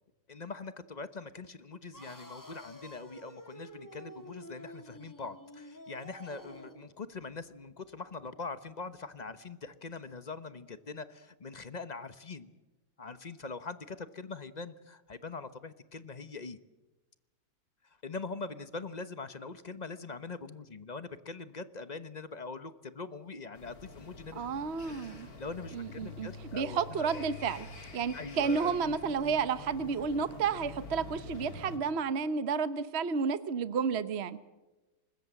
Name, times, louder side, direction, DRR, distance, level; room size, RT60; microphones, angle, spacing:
voice 1, 0.3-12.5 13.0-16.6 18.0-24.4 25.0-27.2 28.1-28.7, left 4 dB, 30° left, 13 dB, 0.8 m, -43 dB
sound 1, 1.9-6.9, equal, 10° left, 2.7 m, -50 dB
sound 2, 23.5-31.8, left 2 dB, 45° left, 3.2 m, -47 dB
voice 2, 24.3-25.3 25.7-27.7 27.9-34.4, right 5 dB, 45° right, 13 dB, 0.9 m, -31 dB
25.0 x 21.0 x 7.7 m, 1.1 s
omnidirectional pair, 2.1 m